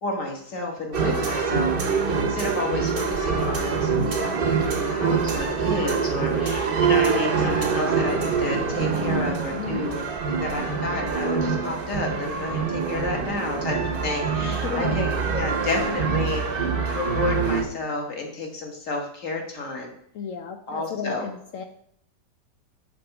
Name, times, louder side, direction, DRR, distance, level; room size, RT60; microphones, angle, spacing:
voice 1, 0.0-13.8 14.0-16.6 16.9-19.9 20.7-21.3, left 3 dB, 50° left, 2 dB, 1.6 m, -31 dB
sound 1, 0.9-17.6, right 5 dB, 45° right, 0.8 m, -25 dB
voice 2, 4.0-4.4 9.1-9.9 14.6-15.1 20.1-21.6, left 7 dB, 70° left, 6 dB, 0.7 m, -34 dB
6.7 x 3.9 x 5.7 m, 0.66 s
omnidirectional pair, 1.8 m